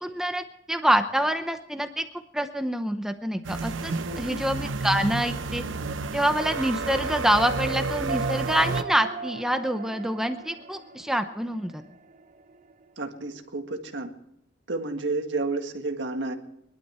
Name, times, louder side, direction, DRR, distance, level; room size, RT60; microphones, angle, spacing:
voice 1, 0.0-2.1 2.3-5.6 6.1-11.8, equal, 5° right, 7 dB, 0.8 m, -26 dB
sound 1, 3.4-8.8, right 3 dB, 90° right, 0.8 m, -30 dB
voice 2, 4.0-4.4 13.0-14.1 14.7-16.3, right 3 dB, 70° right, 5 dB, 1.8 m, -31 dB
sound 2, 8.1-12.8, right 5 dB, 45° right, 0.9 m, -38 dB
22.5 x 12.0 x 4.4 m, 0.79 s
head